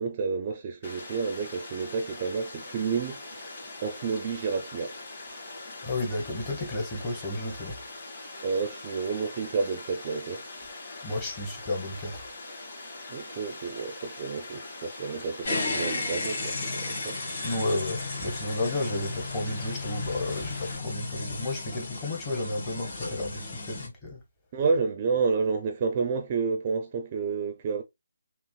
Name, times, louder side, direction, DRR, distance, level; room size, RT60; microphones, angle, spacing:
voice 1, 0.0-5.0 8.4-10.4 13.1-17.2 24.5-27.8, right 5 dB, 30° right, 0.5 m, -30 dB
Water, 0.8-20.8, left 2 dB, 40° left, 2.6 m, -42 dB
voice 2, 5.8-7.8 11.0-12.3 17.4-24.2, left 2 dB, 20° left, 1.1 m, -32 dB
sound 1, 15.4-23.9, left 3 dB, 55° left, 2.2 m, -34 dB
5.7 x 2.0 x 2.2 m
hypercardioid pair, 165°, 0 cm